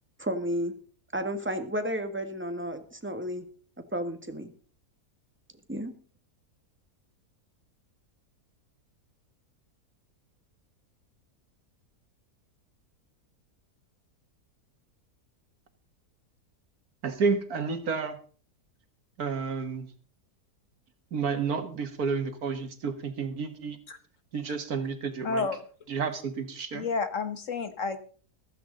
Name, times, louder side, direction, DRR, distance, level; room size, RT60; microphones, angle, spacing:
voice 1, 0.2-0.7 1.1-3.4 3.9-4.5 5.7-5.9, equal, 10° right, 7 dB, 1.4 m, -32 dB
voice 2, 17.0-18.2 19.2-19.9 21.1-23.8 24.3-25.4 25.9-26.9, right 5 dB, 70° right, 9 dB, 2.1 m, -30 dB
voice 3, 25.2-25.6 26.7-28.0, left 4 dB, 55° left, 10 dB, 1.6 m, -30 dB
15.0 x 14.0 x 3.9 m, 0.40 s
omnidirectional pair, 1.6 m